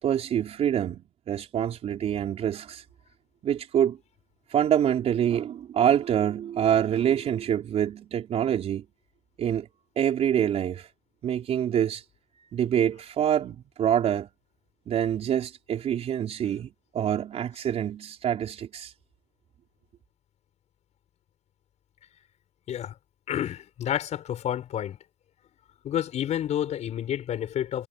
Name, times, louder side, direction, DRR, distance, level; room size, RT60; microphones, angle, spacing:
voice 1, 0.0-2.8 3.4-4.0 4.5-8.8 9.4-9.7 10.0-10.9 11.2-12.0 12.4-14.3 14.9-18.9, right 9 dB, 10° right, 4.7 m, -26 dB
voice 2, 23.3-25.0 25.8-27.9, left 10 dB, 15° left, 6.5 m, -29 dB
hypercardioid pair, 165°, 49 cm